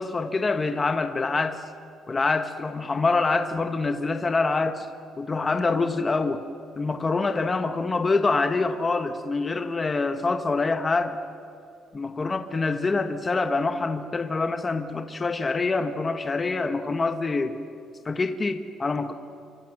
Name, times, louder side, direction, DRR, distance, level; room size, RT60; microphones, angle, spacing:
voice 1, 0.0-1.6 2.1-4.9 5.2-6.4 6.8-11.2 11.9-17.6 18.0-19.1, left 3 dB, 20° left, 8 dB, 1.1 m, -25 dB
29.0 x 24.5 x 7.7 m, 2.4 s
cardioid pair, 145°, 0 cm